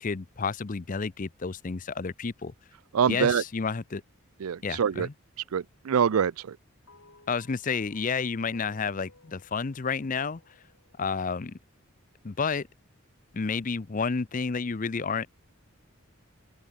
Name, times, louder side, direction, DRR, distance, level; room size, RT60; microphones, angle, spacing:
voice 1, 0.0-2.5 3.1-4.0 4.6-5.1 7.3-10.4 11.0-11.6 12.2-12.7 13.3-15.3, left 5 dB, 40° left, 0.5 m, -30 dB
voice 2, 2.9-3.4 4.4-5.1 5.5-6.6, right 7 dB, 85° right, 0.4 m, -25 dB
sound 1, 6.9-11.3, left 3 dB, 85° left, 6.7 m, -58 dB
head